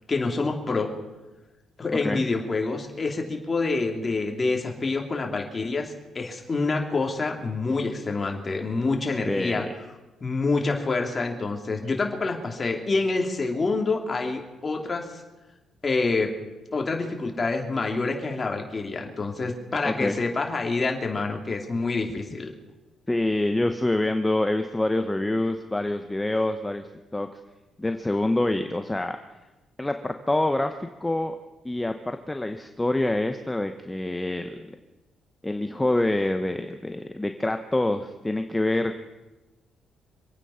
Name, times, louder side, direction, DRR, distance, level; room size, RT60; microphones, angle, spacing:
voice 1, 0.1-0.9 1.8-9.6 10.2-15.2 15.8-16.3 16.7-22.5, left 3 dB, 30° left, 2 dB, 2.9 m, -27 dB
voice 2, 1.9-2.2 9.3-9.7 19.8-20.2 23.1-26.9 27.1-27.3 27.8-29.2 29.8-31.3 31.6-34.8 35.4-39.0, left 1 dB, 10° left, 7 dB, 0.9 m, -26 dB
26.0 x 9.2 x 5.7 m, 1.1 s
cardioid pair, 90°, 0 cm